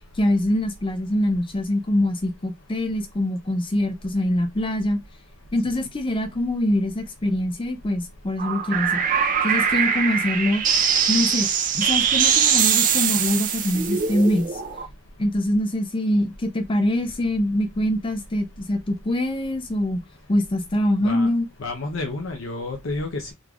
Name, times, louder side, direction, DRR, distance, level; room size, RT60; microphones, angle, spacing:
voice 1, 0.2-5.0 5.5-9.0 9.4-10.7 11.1-11.5 11.7-14.6 15.2-20.0 20.3-21.5, left 1 dB, 25° left, 0.4 m, -24 dB
sound 1, 8.4-14.9, right 7 dB, 40° right, 0.5 m, -22 dB
voice 2, 21.6-23.3, left 2 dB, 65° left, 0.7 m, -30 dB
3.8 x 3.2 x 2.3 m
head